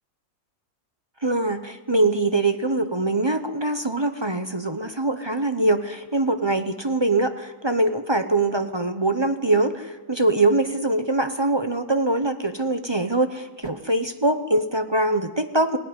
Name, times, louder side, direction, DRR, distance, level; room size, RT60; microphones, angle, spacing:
voice 1, 1.2-15.8, right 2 dB, 25° right, 8 dB, 0.5 m, -23 dB
21.5 x 17.5 x 9.8 m, 1.3 s
omnidirectional pair, 1.7 m